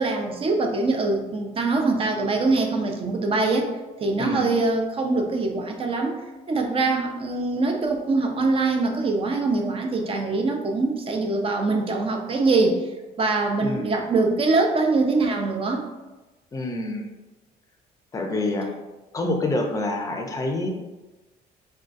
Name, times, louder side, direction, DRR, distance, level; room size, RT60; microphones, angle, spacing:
voice 1, 0.0-3.7 4.0-12.8 13.2-15.9, right 3 dB, 35° right, 3 dB, 0.5 m, -23 dB
voice 2, 4.2-4.5 13.6-14.0 16.5-17.1 18.1-18.7 19.1-20.7, left 2 dB, 20° left, 2 dB, 0.5 m, -27 dB
3.7 x 2.3 x 2.5 m, 1.1 s
cardioid pair, 110°, 17 cm